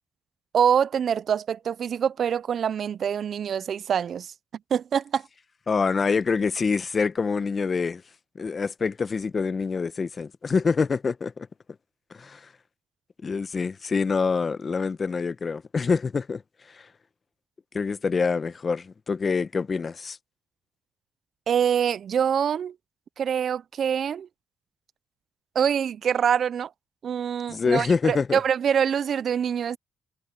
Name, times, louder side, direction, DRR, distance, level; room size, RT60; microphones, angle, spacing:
voice 1, 0.5-4.3 4.7-5.3 21.5-22.7 23.2-24.3 25.6-26.7 27.0-29.8, right 8 dB, 55° right, 0.3 m, -25 dB
voice 2, 5.7-8.0 8.3-11.5 12.1-12.4 13.2-16.4 17.7-20.2 27.5-28.4, left 5 dB, 35° left, 0.9 m, -26 dB
cardioid pair, 90°, 0 cm